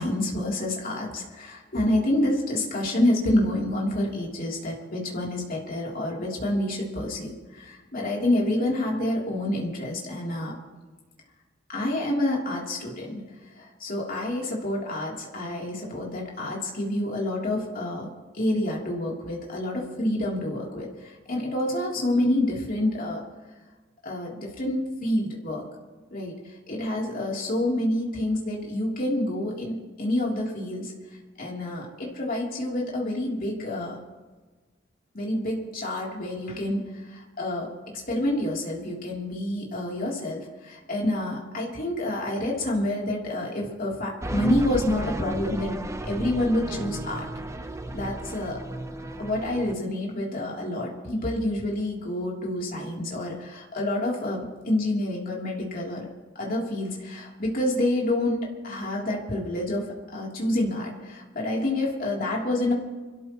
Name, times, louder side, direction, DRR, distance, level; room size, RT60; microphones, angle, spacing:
voice 1, 0.0-10.5 11.7-13.1 13.6-18.1 18.3-23.2 24.0-25.6 26.1-30.9 31.4-34.0 35.1-37.7 38.1-45.7 46.0-47.3 47.9-48.6 49.2-56.1 56.4-62.7, left 1 dB, 50° left, -3 dB, 3.4 m, -28 dB
sound 1, 44.2-49.7, right 1 dB, 15° right, 0.9 m, -33 dB
28.0 x 13.5 x 3.1 m, 1.3 s
head